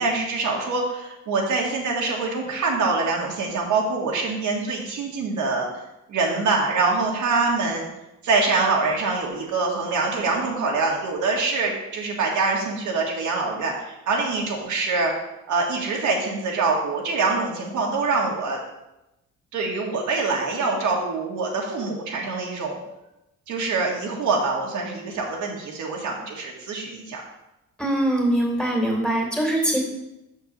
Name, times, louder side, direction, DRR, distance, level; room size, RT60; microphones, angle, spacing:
voice 1, 0.0-5.7 6.1-7.8 8.2-15.1 15.5-18.6 19.5-22.8 23.5-27.2, right 3 dB, 75° right, -2 dB, 1.9 m, -24 dB
voice 2, 27.8-29.8, right 1 dB, 5° left, -1 dB, 2.8 m, -22 dB
6.5 x 4.6 x 6.7 m, 0.91 s
cardioid pair, 90°, 30 cm